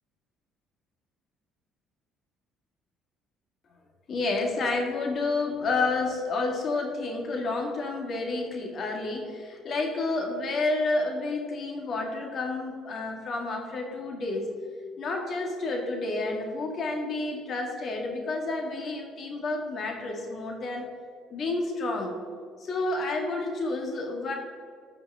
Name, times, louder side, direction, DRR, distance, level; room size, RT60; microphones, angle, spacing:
voice 1, 4.1-14.5 15.0-20.9 21.3-22.2 22.6-24.3, left 3 dB, 50° left, 2 dB, 1.9 m, -30 dB
13.5 x 5.1 x 3.6 m, 2.1 s
cardioid pair, 105°, 0 cm